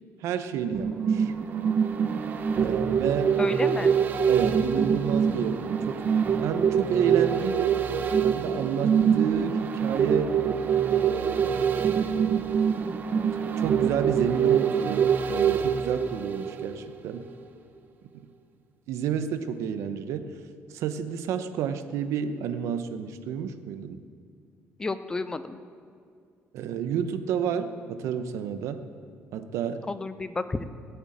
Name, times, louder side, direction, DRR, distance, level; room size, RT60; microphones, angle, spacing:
voice 1, 0.2-1.3 2.6-3.4 4.3-6.1 6.4-7.8 8.2-10.4 11.0-11.6 13.6-17.3 18.9-20.3 20.7-24.0 26.5-28.9 29.3-29.9, right 8 dB, 75° right, 10 dB, 0.8 m, -30 dB
sound 1, 0.7-17.0 17.3-17.4, right 7 dB, 35° right, 0.7 m, -25 dB
voice 2, 3.4-4.0 24.8-25.6 29.9-30.6, left 3 dB, 15° left, 12 dB, 0.5 m, -31 dB
16.0 x 7.1 x 8.6 m, 2.2 s
cardioid pair, 175°, 5 cm